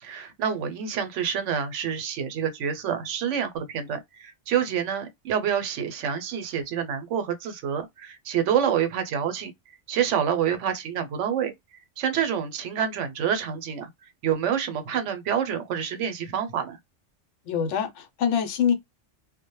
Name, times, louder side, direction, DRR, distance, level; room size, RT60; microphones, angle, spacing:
voice 1, 0.0-9.5 9.9-11.5 12.0-13.9 14.2-16.8, right 8 dB, 80° right, 0.9 m, -27 dB
voice 2, 17.5-18.7, left 8 dB, 75° left, 0.9 m, -24 dB
2.1 x 2.1 x 2.9 m
omnidirectional pair, 1.2 m